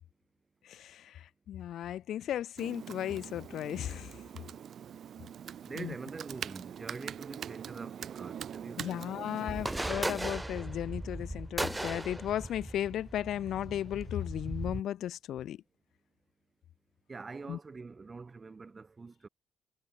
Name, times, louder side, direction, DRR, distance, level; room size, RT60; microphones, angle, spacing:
voice 1, 0.6-4.2 5.8-5.9 8.8-15.6 17.5-17.6, left 11 dB, 75° left, 0.7 m, -35 dB
Computer keyboard, 2.6-9.9, right 9 dB, 60° right, 0.7 m, -43 dB
voice 2, 5.6-9.8 17.1-19.3, right 4 dB, 30° right, 5.3 m, -45 dB
sound 1, 9.5-14.8, right 1 dB, 10° right, 0.3 m, -37 dB
cardioid pair, 90°, 0 cm